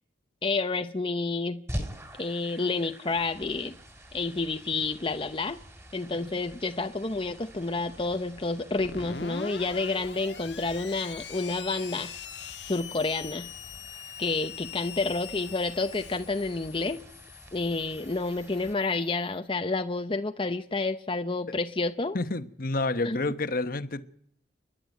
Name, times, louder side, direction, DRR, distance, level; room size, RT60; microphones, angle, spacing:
voice 1, 0.4-1.6 2.2-3.7 4.1-5.6 5.9-12.1 12.7-13.5 14.2-17.0 17.5-22.2 23.0-23.2, left 3 dB, 30° left, 0.8 m, -29 dB
sound 1, 1.7-18.7, equal, 15° right, 3.5 m, -46 dB
Screech, 8.8-19.2, left 7 dB, 80° left, 1.4 m, -43 dB
voice 2, 22.1-24.0, left 2 dB, 55° left, 1.2 m, -29 dB
29.0 x 11.5 x 9.2 m
head